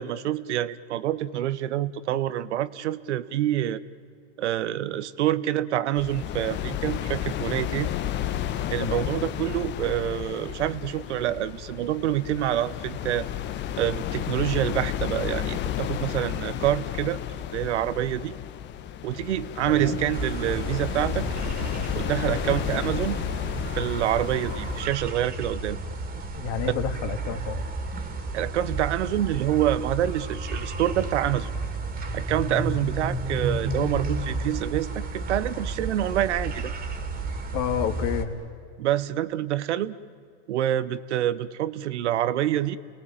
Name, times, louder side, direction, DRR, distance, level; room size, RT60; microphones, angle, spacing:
voice 1, 0.0-3.8 4.4-7.9 8.7-13.3 13.8-17.2 17.5-18.3 19.0-21.3 21.9-23.2 23.8-25.8 28.3-31.5 32.1-36.7 38.8-40.0 40.5-42.8, right 12 dB, 75° right, 15 dB, 1.1 m, -27 dB
sound 1, 6.0-24.9, left 11 dB, 30° left, 1.1 m, -32 dB
voice 2, 8.8-9.2 19.7-20.0 22.2-22.6 26.3-27.6 37.5-38.3, left 8 dB, 50° left, 7 dB, 2.5 m, -30 dB
sound 2, 20.1-38.2, right 2 dB, 25° right, 2.8 m, -32 dB
30.0 x 19.0 x 9.0 m, 2.3 s
hypercardioid pair, 125°, 35 cm